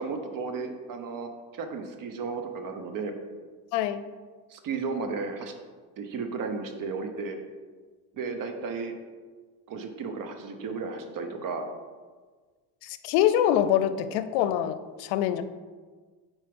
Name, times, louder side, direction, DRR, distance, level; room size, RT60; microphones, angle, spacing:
voice 1, 0.0-3.1 4.5-5.5 6.0-7.4 8.1-8.9 9.7-11.7, right 4 dB, 50° right, 6 dB, 0.8 m, -34 dB
voice 2, 3.7-4.1 12.8-15.4, left 11 dB, 90° left, 12 dB, 0.5 m, -25 dB
4.5 x 4.4 x 5.2 m, 1.4 s
cardioid pair, 110°, 42 cm